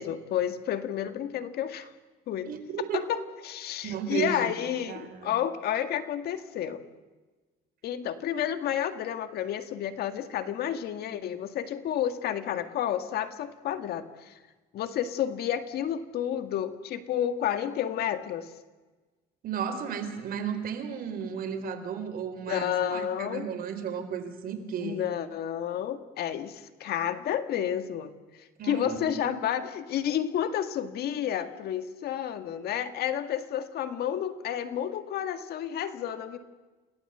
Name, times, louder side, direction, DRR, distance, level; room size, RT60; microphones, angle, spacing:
voice 1, 0.0-1.9 2.3-2.5 2.9-3.2 3.4-6.8 7.8-14.4 14.7-18.5 22.4-23.5 24.8-36.4, left 10 dB, 70° left, 9 dB, 1.9 m, -31 dB
voice 2, 2.5-3.1 3.8-4.5 4.9-5.3 19.4-25.1 28.6-29.4, right 7 dB, 60° right, 8 dB, 3.9 m, -34 dB
29.0 x 18.5 x 8.1 m, 1.2 s
cardioid pair, 110°, 17 cm